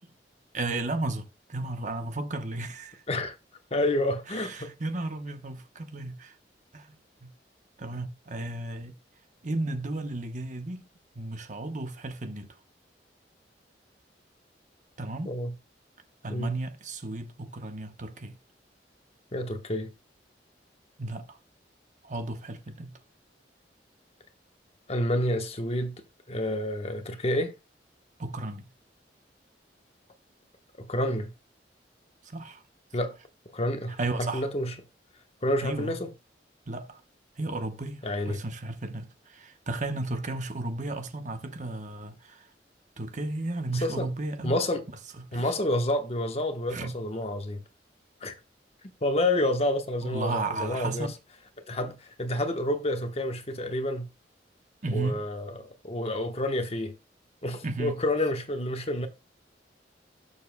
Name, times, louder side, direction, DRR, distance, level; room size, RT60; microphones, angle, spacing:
voice 1, 0.5-3.0 4.3-6.4 6.7-7.3 7.8-8.9 9.4-10.8 11.1-12.6 15.0-15.3 16.2-18.4 21.0-21.4 22.0-22.9 28.2-28.7 32.2-32.6 34.0-34.5 35.6-36.0 36.7-37.0 37.4-42.5 43.0-44.6 45.2-45.5 46.7-47.0 50.0-51.2 54.8-55.2 57.6-58.0, right 2 dB, 45° right, 1.0 m, -34 dB
voice 2, 3.7-4.7 15.2-15.5 16.3-16.6 19.3-19.9 24.9-26.0 26.3-27.5 30.8-31.3 32.9-33.2 33.5-34.7 35.4-36.1 38.0-38.4 43.7-44.1 44.4-44.8 45.3-47.6 48.2-48.3 49.0-51.1 51.7-54.1 54.9-57.0 57.4-59.1, left 1 dB, 35° left, 1.1 m, -29 dB
16.5 x 7.1 x 2.3 m
head